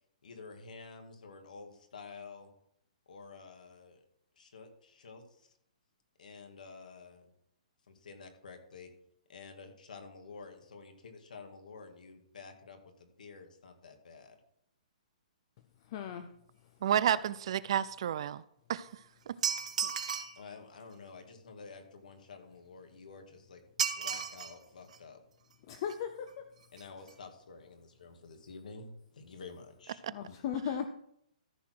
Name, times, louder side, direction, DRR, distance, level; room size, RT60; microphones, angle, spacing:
voice 1, 0.2-2.5 3.1-4.0 4.4-5.5 6.2-7.3 7.9-8.9 9.3-14.4 20.4-23.6 23.9-25.2 26.7-30.0, left 4 dB, 85° left, 5 dB, 2.1 m, -50 dB
voice 2, 15.9-16.3 19.8-19.9 25.7-26.3 30.1-30.9, left 8 dB, 35° left, 8 dB, 0.7 m, -36 dB
voice 3, 16.8-18.4 18.7-18.9, right 10 dB, 45° right, 17 dB, 0.3 m, -30 dB
sound 1, 19.4-20.4 23.8-24.5 24.9-25.0 25.9-26.0 26.3-26.4 26.6-26.8 27.1-27.2, right 7 dB, 60° right, 1.1 m, -34 dB
14.0 x 4.8 x 6.0 m, 0.72 s
hypercardioid pair, 170°, 4 cm